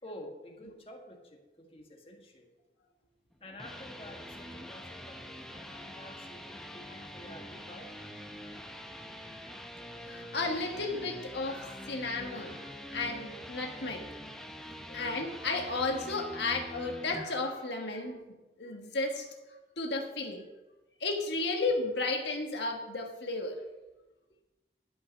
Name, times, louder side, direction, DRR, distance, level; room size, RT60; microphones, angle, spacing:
voice 1, 0.0-2.5 3.4-7.9, left 1 dB, 30° left, 2 dB, 1.6 m, -50 dB
sound 1, 3.3-17.2, equal, 5° left, 0.7 m, -45 dB
voice 2, 5.5-6.1 10.0-12.7 12.9-14.0 14.9-18.2 18.6-19.3 19.8-20.4 21.0-23.6, left 3 dB, 85° left, 2 dB, 1.5 m, -33 dB
12.0 x 5.6 x 6.4 m, 1.1 s
head